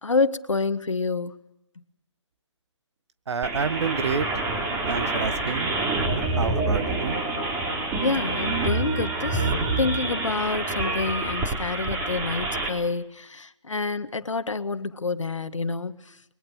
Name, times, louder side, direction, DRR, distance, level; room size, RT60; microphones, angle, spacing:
voice 1, 0.0-1.4 8.0-9.5 9.8-16.2, left 4 dB, 90° left, 11 dB, 1.7 m, -28 dB
voice 2, 3.3-4.4 4.9-5.7 6.1-7.2, right 5 dB, 65° right, 12 dB, 1.7 m, -29 dB
sound 1, 3.4-12.7, right 2 dB, 15° right, 4.1 m, -27 dB
30.0 x 22.0 x 6.5 m, 0.83 s
hypercardioid pair, 150°, 16 cm